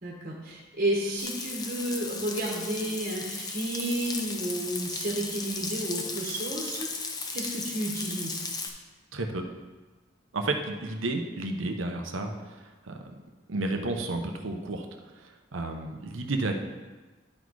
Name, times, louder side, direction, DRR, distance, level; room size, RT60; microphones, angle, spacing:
voice 1, 0.0-8.4, right 1 dB, 45° right, -3 dB, 1.4 m, -32 dB
Frying (food), 1.2-8.7, left 4 dB, 20° left, 0.6 m, -36 dB
voice 2, 9.1-9.4 10.3-12.3 12.9-13.0 13.5-14.8 15.5-16.5, right 2 dB, 80° right, 4 dB, 0.8 m, -31 dB
11.0 x 4.1 x 4.7 m, 1.3 s
head